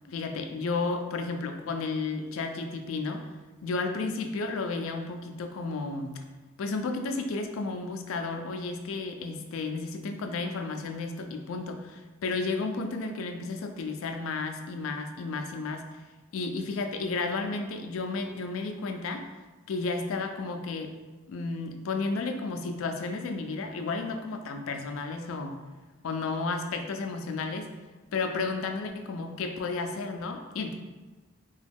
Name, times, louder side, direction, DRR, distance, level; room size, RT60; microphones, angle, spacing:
voice 1, 0.1-3.3 3.6-6.1 6.6-15.8 16.3-19.2 19.7-20.9 21.3-25.6 26.0-27.7 28.1-30.7, left 3 dB, 75° left, 5 dB, 0.4 m, -32 dB
2.9 x 2.3 x 3.4 m, 1.2 s
head